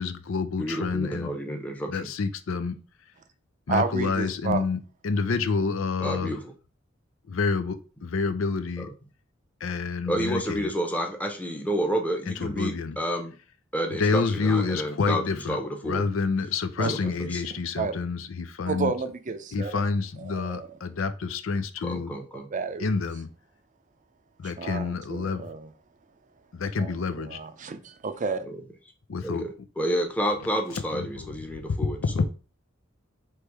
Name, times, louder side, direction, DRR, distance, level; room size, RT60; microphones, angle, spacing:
voice 1, 0.0-1.3 1.9-2.8 3.7-4.8 5.0-6.4 7.3-8.9 9.6-10.7 12.3-13.0 14.0-15.6 15.8-18.9 19.5-22.1 22.8-23.3 24.4-25.4 26.5-27.4 29.1-29.4 30.9-31.3 32.1-32.3, left 4 dB, 85° left, 0.5 m, -28 dB
voice 2, 0.6-2.1 6.0-6.5 8.8-8.9 10.1-13.3 13.7-16.0 16.8-17.4 21.8-22.5 28.5-28.6 29.2-29.5 29.8-32.2, equal, 10° left, 0.8 m, -30 dB
voice 3, 3.7-4.6 6.0-6.2 16.8-17.1 17.5-17.9 18.7-19.8 20.2-20.7 22.5-22.9 24.6-25.7 26.8-28.5, right 4 dB, 40° right, 0.5 m, -31 dB
3.3 x 3.1 x 4.6 m
head